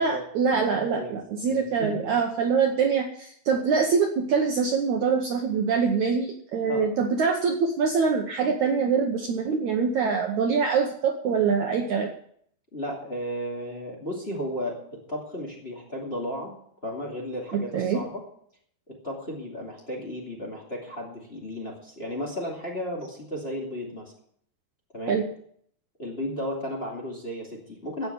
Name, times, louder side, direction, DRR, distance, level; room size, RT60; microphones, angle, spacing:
voice 1, 0.0-12.1 17.5-18.0 25.1-25.3, right 5 dB, 65° right, 3 dB, 2.0 m, -24 dB
voice 2, 0.7-2.1 6.6-6.9 12.7-14.8 15.1-16.5 16.8-18.2 18.9-24.1 24.9-25.2 26.0-28.1, equal, 20° left, -3 dB, 2.3 m, -34 dB
16.5 x 5.9 x 8.3 m, 0.65 s
omnidirectional pair, 4.4 m